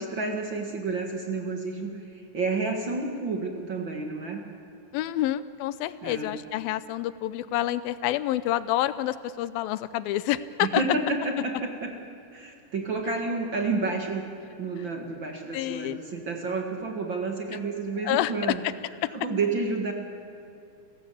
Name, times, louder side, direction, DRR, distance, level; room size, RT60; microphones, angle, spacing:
voice 1, 0.0-4.4 6.0-6.4 10.6-11.9 12.3-14.2 14.6-18.6 19.1-19.9, right 3 dB, 45° right, 3 dB, 1.9 m, -30 dB
voice 2, 4.9-10.8 15.5-16.0 18.0-18.3 18.6-18.7 19.0-19.1, left 14 dB, 90° left, 15 dB, 2.6 m, -28 dB
30.0 x 16.0 x 8.5 m, 2.6 s
omnidirectional pair, 4.1 m